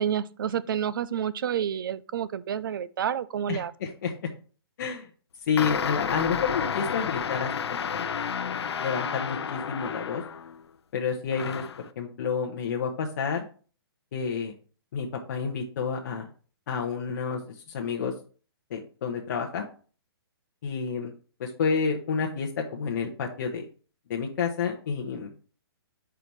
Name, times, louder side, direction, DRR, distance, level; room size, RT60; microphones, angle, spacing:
voice 1, 0.0-3.7, right 9 dB, 55° right, 0.4 m, -29 dB
voice 2, 3.5-4.3 4.8-5.1 5.5-8.1 8.8-10.2 10.9-11.6 12.0-13.4 14.1-14.5 14.9-16.3 16.7-17.4 17.7-18.1 18.7-19.6 20.6-21.1 21.4-23.6 24.1-25.3, left 6 dB, 45° left, 0.9 m, -29 dB
sound 1, 5.6-10.6 11.3-11.9, left 7 dB, 85° left, 0.5 m, -31 dB
4.9 x 4.6 x 5.5 m
hypercardioid pair, 165°, 13 cm